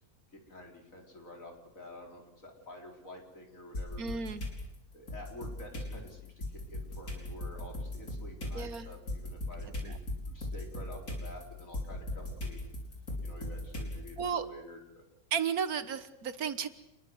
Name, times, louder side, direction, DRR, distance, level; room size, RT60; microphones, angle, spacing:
voice 1, 0.3-4.2 4.9-12.7 13.2-15.1, left 1 dB, 60° left, 2 dB, 4.8 m, -49 dB
sound 1, 3.7-4.6 5.1-14.3, left 1 dB, 80° left, 5.6 m, -39 dB
voice 2, 4.0-4.4 8.5-8.9 9.8-10.0 14.2-14.5 15.3-16.7, right 7 dB, 75° right, 12 dB, 1.8 m, -33 dB
27.0 x 21.0 x 7.9 m, 0.85 s
omnidirectional pair, 1.6 m